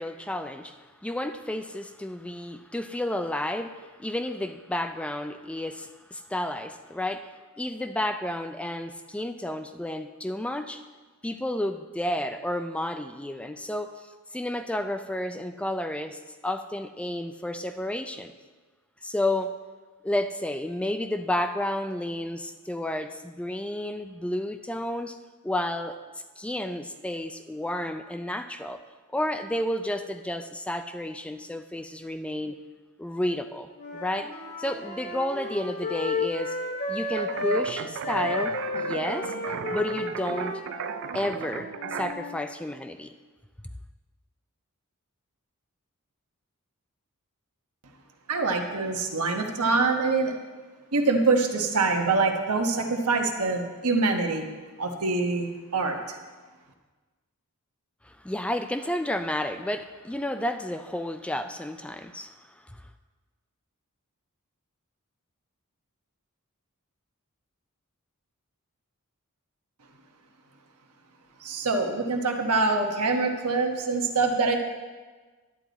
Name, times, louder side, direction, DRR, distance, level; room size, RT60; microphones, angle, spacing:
voice 1, 0.0-10.8 11.2-14.1 14.3-18.3 19.0-19.5 20.0-25.2 25.4-26.0 26.4-28.8 29.1-32.6 33.0-34.3 34.6-36.6 36.9-39.3 39.7-40.6 41.1-43.1 58.0-62.3 62.7-62.8, left 1 dB, 5° left, 8 dB, 0.3 m, -31 dB
Wind instrument woodwind instrument, 33.7-37.6 38.0-42.4, left 2 dB, 50° left, 1.8 m, -32 dB
sound 1, 37.2-42.1, right 7 dB, 60° right, 0.4 m, -36 dB
voice 2, 48.3-50.3 50.9-54.5 54.8-56.2 71.4-74.6, right 3 dB, 85° right, 3 dB, 1.2 m, -25 dB
11.0 x 9.4 x 4.0 m, 1.3 s
head